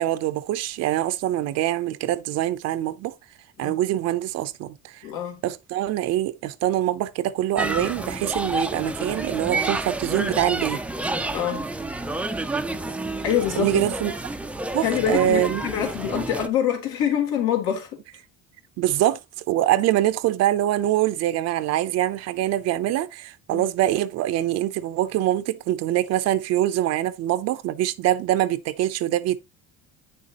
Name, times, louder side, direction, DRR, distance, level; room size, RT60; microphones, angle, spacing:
voice 1, 0.0-3.1 3.6-5.1 5.4-10.8 13.6-14.1 14.7-15.6 18.8-19.2 19.5-29.4, right 13 dB, 60° right, 0.7 m, -24 dB
voice 2, 5.0-5.4 11.3-11.7 13.2-13.9 14.8-17.9 23.5-23.6, left 9 dB, 80° left, 3.4 m, -25 dB
sound 1, 7.6-16.5, right 2 dB, 5° right, 0.5 m, -29 dB
9.2 x 6.8 x 2.9 m
cardioid pair, 150°, 30 cm